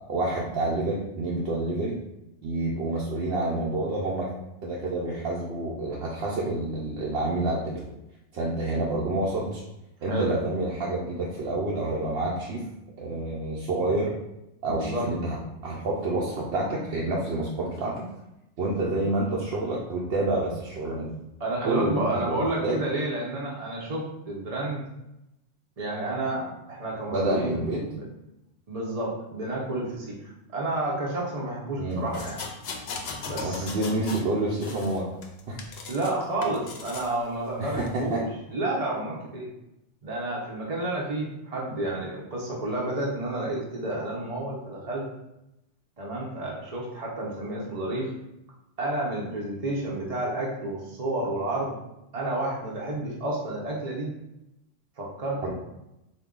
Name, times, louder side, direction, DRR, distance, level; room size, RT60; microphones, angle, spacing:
voice 1, 0.0-2.0 2.4-4.3 4.6-7.8 8.3-9.6 10.0-12.6 13.0-14.1 14.6-15.4 15.6-18.0 18.6-21.2 21.7-22.8 27.1-27.8 31.8-32.1 33.4-35.1 35.5-35.6 37.6-38.2 55.4-55.5, right 2 dB, 65° right, -4 dB, 0.8 m, -28 dB
voice 2, 14.7-15.1 21.4-24.8 25.8-28.1 28.7-32.5 33.3-33.7 35.9-39.5 40.0-45.1 46.0-48.1 48.8-51.8 52.1-54.1 55.0-55.5, right 1 dB, 40° right, -4 dB, 0.7 m, -30 dB
sound 1, 32.1-34.3 34.6-36.1 36.4-37.1 37.7-37.9, left 4 dB, 65° left, 0.8 m, -37 dB
4.0 x 2.7 x 3.6 m, 0.90 s
omnidirectional pair, 1.2 m